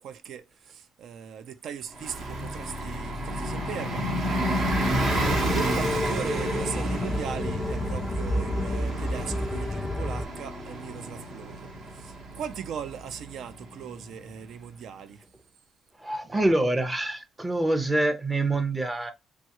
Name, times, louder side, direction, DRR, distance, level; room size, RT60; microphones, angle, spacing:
voice 1, 0.0-4.1 5.1-15.2, right 8 dB, 75° right, 0.4 m, -39 dB
Bus, 1.9-14.2, right 1 dB, 60° right, 1.0 m, -31 dB
sound 1, 4.6-10.2, left 2 dB, 25° left, 0.3 m, -31 dB
voice 2, 16.0-19.1, right 2 dB, 20° right, 0.6 m, -26 dB
3.1 x 2.3 x 2.8 m
cardioid pair, 90°, 0 cm